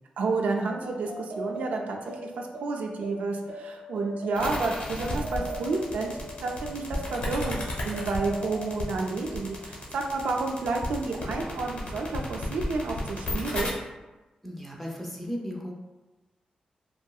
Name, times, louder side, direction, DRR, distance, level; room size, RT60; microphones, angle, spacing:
voice 1, 0.2-13.7, right 3 dB, 85° right, 1 dB, 0.4 m, -30 dB
sound 1, 0.7-9.7, right 1 dB, 45° right, 0.7 m, -40 dB
sound 2, 4.3-13.7, left 1 dB, 60° left, 0.9 m, -34 dB
voice 2, 14.4-15.7, equal, 5° left, -1 dB, 0.5 m, -35 dB
3.0 x 2.6 x 2.3 m, 1.1 s
wide cardioid pair, 125°, 2 cm